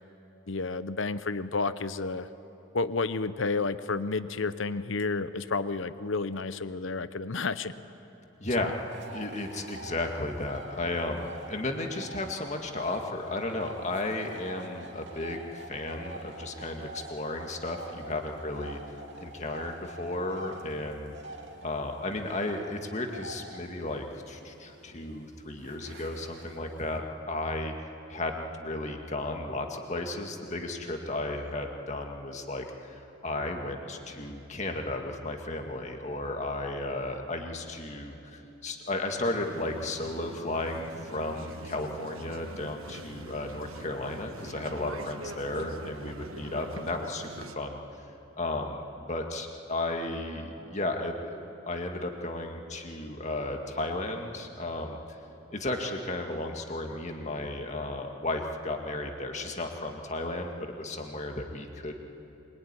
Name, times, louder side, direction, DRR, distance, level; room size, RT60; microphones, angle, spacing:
voice 1, 0.5-2.3 2.7-7.7 8.6-8.7, left 3 dB, 65° left, 13 dB, 0.8 m, -31 dB
voice 2, 8.4-8.7 9.1-21.1 21.6-27.0 27.3-27.7 28.1-47.8 48.4-55.2 55.5-62.0, left 2 dB, 35° left, 3 dB, 2.0 m, -34 dB
sound 1, 8.5-27.0, right 2 dB, 55° right, 2.8 m, -46 dB
sound 2, 39.1-47.6, right 2 dB, 80° right, 1.3 m, -44 dB
23.5 x 22.5 x 9.8 m, 3.0 s
head